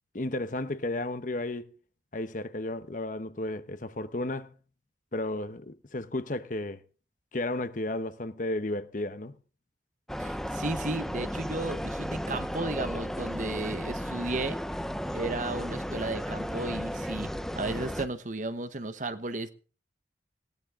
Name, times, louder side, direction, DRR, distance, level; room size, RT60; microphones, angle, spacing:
voice 1, 0.1-1.7 2.1-4.5 5.1-6.8 7.3-9.3, left 2 dB, 45° left, 1.0 m, -33 dB
sound 1, 10.1-18.1, equal, ahead, 0.8 m, -34 dB
voice 2, 10.2-14.6 15.1-19.5, right 2 dB, 45° right, 1.2 m, -34 dB
19.0 x 17.5 x 3.7 m
head